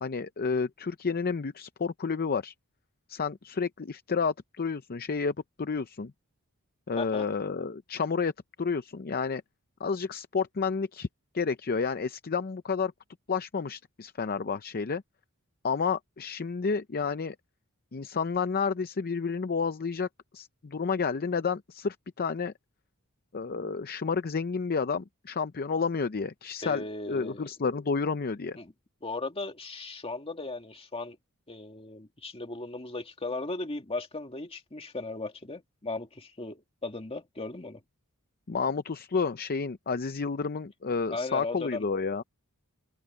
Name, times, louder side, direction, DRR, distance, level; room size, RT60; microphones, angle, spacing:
voice 1, 0.0-2.5 3.1-6.1 6.9-8.3 8.6-9.4 9.8-11.1 11.3-12.9 13.3-15.0 15.6-17.4 17.9-20.1 20.3-22.5 23.3-28.6 38.5-42.2, left 5 dB, 45° left, 0.6 m, -30 dB
voice 2, 7.0-7.3 26.6-27.5 28.6-28.7 29.0-31.2 31.5-37.8 41.1-41.8, left 2 dB, 25° left, 2.2 m, -37 dB
open air
head